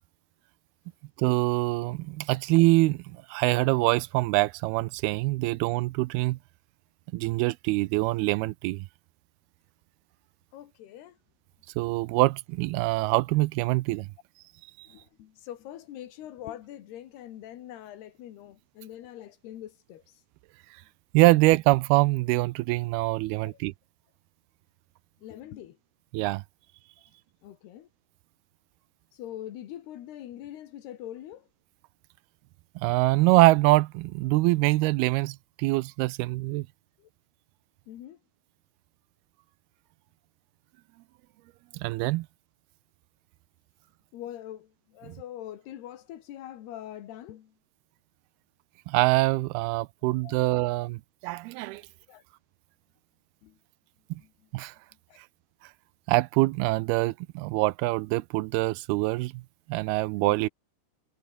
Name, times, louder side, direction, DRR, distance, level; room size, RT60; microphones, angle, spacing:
voice 1, 1.2-6.4 7.1-8.9 11.8-14.1 14.8-14.9 21.1-23.7 26.1-26.4 32.8-36.7 41.7-42.3 45.1-45.2 48.9-51.8 54.1-54.2 54.5-54.7 56.1-59.4 59.7-60.5, right 20 dB, 80° right, 2.5 m, -24 dB
voice 2, 10.5-11.2 14.9-20.1 23.4-23.6 25.2-25.8 27.4-27.9 29.1-31.5 37.0-37.1 37.9-38.2 44.1-47.5 50.2-50.3 52.1-52.2 53.4-53.6 54.2-54.3 55.1-55.2 60.3-60.4, left 12 dB, 80° left, 3.8 m, -43 dB
omnidirectional pair, 4.6 m